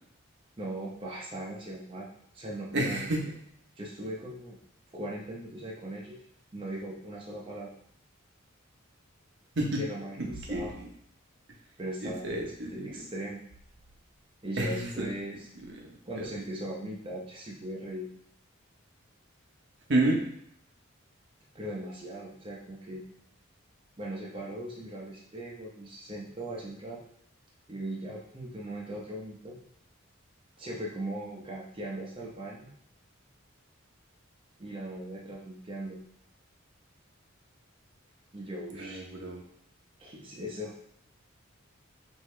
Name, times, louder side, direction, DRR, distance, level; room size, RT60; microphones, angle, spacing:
voice 1, 0.6-2.1 2.3-3.1 3.8-4.6 4.9-6.2 6.5-7.7 9.8-10.8 11.8-12.4 12.7-13.4 14.4-15.5 16.0-18.1 21.5-23.0 24.0-27.0 27.7-29.6 30.6-32.7 34.6-36.0 38.3-39.0 40.0-40.8, right 1 dB, 25° right, -4 dB, 0.7 m, -39 dB
voice 2, 2.7-3.3 9.6-9.8 10.2-10.9 12.0-12.8 14.6-15.1 15.9-16.3 19.9-20.2 38.8-39.4, right 1 dB, 55° right, 0 dB, 0.8 m, -30 dB
5.0 x 2.7 x 3.2 m, 0.70 s
head